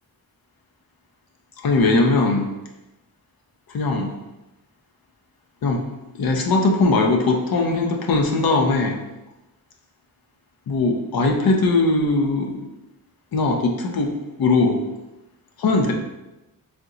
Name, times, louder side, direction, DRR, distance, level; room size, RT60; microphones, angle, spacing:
voice 1, 1.6-2.5 3.7-4.1 5.6-5.8 6.1-9.0 10.7-12.7 13.3-14.8 15.6-15.9, left 3 dB, 90° left, 2 dB, 0.7 m, -20 dB
3.5 x 2.9 x 3.8 m, 0.99 s
wide cardioid pair, 90°, 35 cm